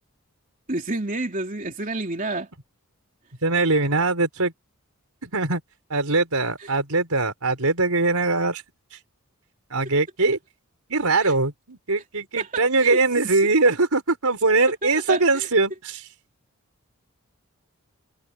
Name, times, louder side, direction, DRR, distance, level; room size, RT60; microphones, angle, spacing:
voice 1, 0.7-2.5 6.6-6.7 11.2-11.3 12.4-13.3 14.8-15.5, right 2 dB, 40° right, 3.3 m, -30 dB
voice 2, 3.4-4.5 5.2-5.6 5.9-8.6 9.7-10.4 10.9-16.0, right 3 dB, 80° right, 4.6 m, -21 dB
head